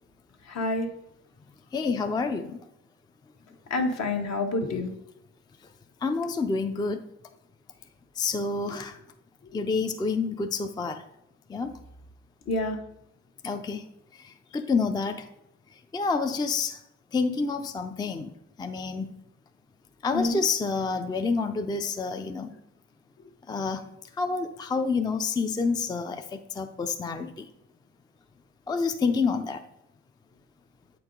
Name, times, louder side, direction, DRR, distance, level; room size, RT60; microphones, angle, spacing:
voice 1, 0.5-0.9 3.7-4.9 12.5-12.8 20.1-20.4, left 2 dB, 60° left, 4 dB, 1.1 m, -27 dB
voice 2, 1.7-2.6 6.0-7.0 8.2-9.0 9.5-11.0 11.5-11.8 13.4-13.9 14.1-15.3 15.9-16.8 17.1-18.3 18.6-19.1 20.0-22.5 23.5-23.8 24.2-27.5 28.7-29.7, left 4 dB, 15° left, 7 dB, 0.4 m, -28 dB
7.8 x 4.6 x 3.8 m, 0.81 s
cardioid pair, 90°, 30 cm